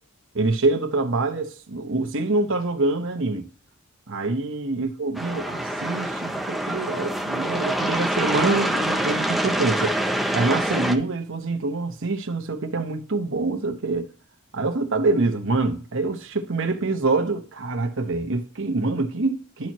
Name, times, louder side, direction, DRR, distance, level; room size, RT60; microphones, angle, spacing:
voice 1, 0.3-3.5 4.1-14.1 14.5-19.7, right 3 dB, 60° right, 1.0 m, -25 dB
sound 1, 5.2-11.0, right 1 dB, ahead, 0.6 m, -25 dB
11.5 x 4.5 x 3.0 m
head